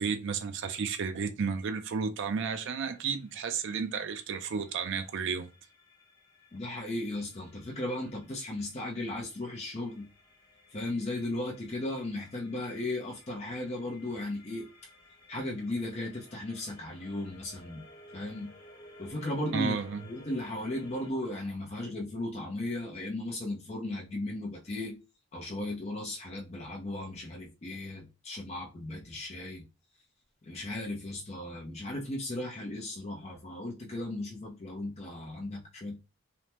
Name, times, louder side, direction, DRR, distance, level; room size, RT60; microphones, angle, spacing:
voice 1, 0.0-5.5 19.5-20.0, right 5 dB, 55° right, 0.4 m, -32 dB
sound 1, 2.2-21.1, left 2 dB, 70° left, 1.1 m, -57 dB
voice 2, 6.5-10.1 10.7-14.7 15.3-17.8 18.1-18.5 19.0-19.8 20.1-25.0 25.3-29.6 30.4-36.0, left 1 dB, 30° left, 0.5 m, -36 dB
3.3 x 2.0 x 2.9 m
head